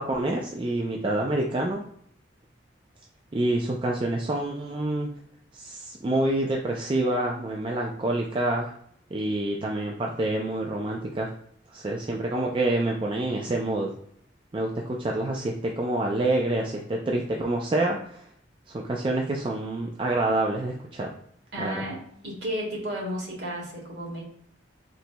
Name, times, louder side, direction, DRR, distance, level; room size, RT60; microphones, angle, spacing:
voice 1, 0.0-1.8 3.3-5.1 5.5-8.7 9.1-11.3 11.7-13.9 14.5-18.3 18.7-21.1 21.6-21.9, right 2 dB, 25° right, 0 dB, 0.4 m, -27 dB
voice 2, 21.5-22.0 22.2-24.2, equal, 60° right, -3 dB, 1.6 m, -32 dB
4.4 x 3.9 x 2.2 m, 0.67 s
head